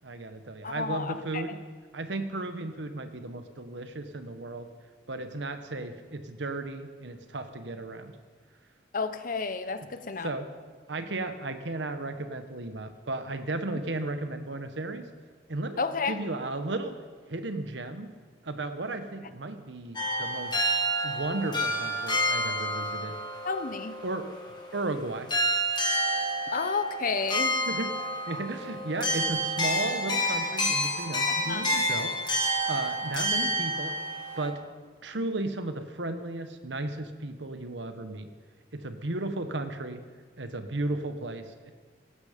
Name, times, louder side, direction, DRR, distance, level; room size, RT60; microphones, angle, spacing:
voice 1, 0.0-1.6 1.9-4.7 5.1-8.1 10.2-10.5 10.9-15.1 15.5-15.8 16.1-17.0 17.3-18.1 18.4-20.6 21.0-23.2 24.0-24.3 24.7-25.3 27.7-27.9 28.3-32.1 32.7-34.0 34.4-34.6 35.0-38.3 38.7-40.0 40.4-41.7, right 2 dB, 70° right, 8 dB, 1.1 m, -34 dB
voice 2, 0.6-1.6 8.9-10.3 15.8-16.2 23.4-23.9 26.5-27.6 31.3-31.7, left 4 dB, 45° left, 11 dB, 0.9 m, -31 dB
sound 1, 20.0-25.0 25.3-34.5, equal, 25° left, 1.9 m, -29 dB
17.5 x 13.0 x 5.2 m, 1.5 s
head